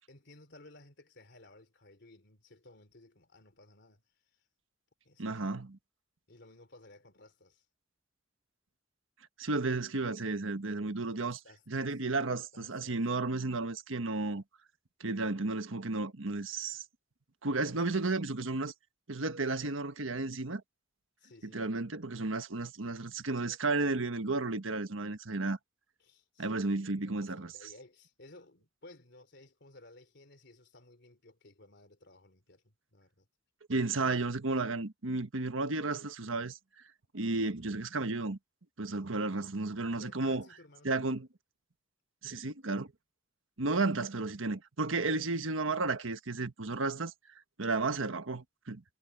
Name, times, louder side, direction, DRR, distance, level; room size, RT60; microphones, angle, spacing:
voice 1, 0.1-4.0 5.1-5.5 6.3-7.6 11.2-12.0 12.5-13.0 21.2-21.6 26.0-26.6 27.0-33.3 40.0-41.1 44.9-45.3, left 2 dB, 60° left, 3.5 m, -57 dB
voice 2, 5.2-5.7 9.4-11.4 11.7-14.4 15.0-16.8 17.4-18.7 19.1-20.6 21.4-25.6 26.4-27.5 33.7-36.6 37.1-38.4 38.8-40.4 40.8-41.3 42.2-42.9 43.6-47.1 47.6-48.8, right 3 dB, 90° right, 1.4 m, -33 dB
head